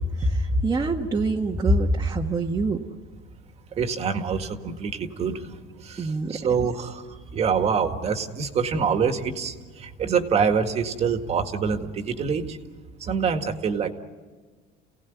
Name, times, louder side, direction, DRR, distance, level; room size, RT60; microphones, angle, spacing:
voice 1, 0.2-2.8 6.0-6.4, right 1 dB, 20° right, 0 dB, 1.3 m, -24 dB
voice 2, 3.7-12.6 13.0-13.9, right 6 dB, 40° right, 7 dB, 1.9 m, -26 dB
29.0 x 17.5 x 9.3 m, 1.4 s
cardioid pair, 130°, 17 cm